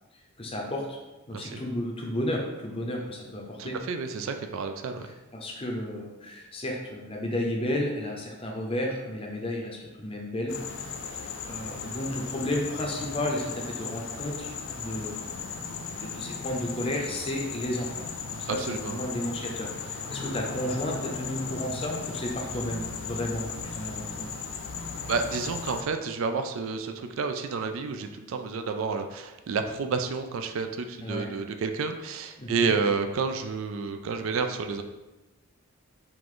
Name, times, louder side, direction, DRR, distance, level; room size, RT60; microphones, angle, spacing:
voice 1, 0.4-1.0 1.3-3.8 5.0-10.6 11.1-15.7 16.0-24.3 31.0-31.3 32.4-32.6, left 1 dB, 25° left, 0 dB, 0.6 m, -33 dB
voice 2, 3.6-5.1 18.5-19.1 25.1-34.8, right 5 dB, 65° right, 7 dB, 0.3 m, -30 dB
sound 1, 10.5-25.8, left 5 dB, 65° left, 0.4 m, -37 dB
4.7 x 2.5 x 3.7 m, 1.1 s
head